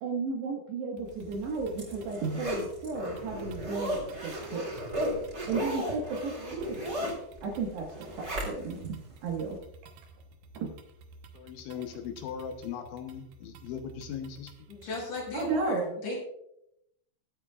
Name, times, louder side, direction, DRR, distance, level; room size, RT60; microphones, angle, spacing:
voice 1, 0.0-4.6 5.5-7.1 7.4-7.9 8.1-9.6 10.6-10.7 15.3-16.0, right 4 dB, 70° right, -2 dB, 3.6 m, -34 dB
sound 1, 1.0-15.6, right 3 dB, 90° right, 1.8 m, -53 dB
Zipper (clothing), 1.3-8.9 9.3-9.4, equal, 25° right, 3.6 m, -35 dB
voice 2, 11.3-14.5, left 8 dB, 80° left, 5 dB, 3.3 m, -39 dB
voice 3, 14.7-16.2, left 2 dB, 45° left, -4 dB, 6.8 m, -35 dB
23.5 x 8.5 x 2.4 m, 0.79 s
omnidirectional pair, 5.4 m